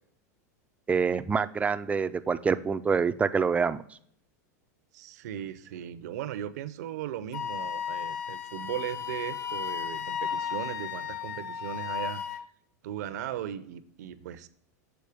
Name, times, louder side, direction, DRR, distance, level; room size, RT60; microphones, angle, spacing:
voice 1, 0.9-3.8, right 5 dB, 15° right, 11 dB, 0.4 m, -26 dB
voice 2, 4.9-12.2 12.8-14.5, right 11 dB, 70° right, 14 dB, 0.6 m, -37 dB
Wind instrument woodwind instrument, 7.3-12.5, left 8 dB, 80° left, 0.5 m, -34 dB
7.0 x 4.3 x 4.8 m, 0.64 s
hypercardioid pair, 115°, 9 cm